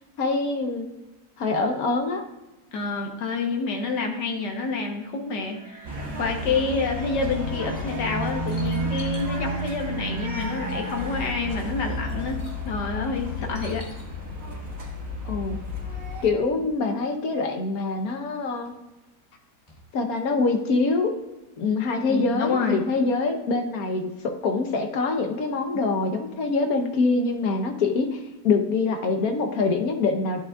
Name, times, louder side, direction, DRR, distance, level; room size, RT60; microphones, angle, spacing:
voice 1, 0.2-0.9 1.4-2.2 15.2-15.6 16.2-18.7 19.9-21.1 21.6-30.4, left 3 dB, 65° left, 5 dB, 1.4 m, -24 dB
voice 2, 2.7-13.9 22.1-22.8, left 3 dB, 90° left, 3 dB, 1.7 m, -28 dB
sound 1, 5.3-12.9, right 2 dB, 80° right, 2.0 m, -45 dB
sound 2, 5.8-16.3, left 1 dB, 55° right, 2.1 m, -31 dB
sound 3, 7.9-9.4 10.4-10.5 10.7-11.3 11.6-12.7 13.4-14.0 16.0-16.1 16.4-16.5 17.2-17.3 17.8-18.7 19.7-19.8 20.2-20.3, left 1 dB, 25° left, 1.9 m, -47 dB
11.5 x 7.2 x 2.4 m, 1.0 s
omnidirectional pair, 1.8 m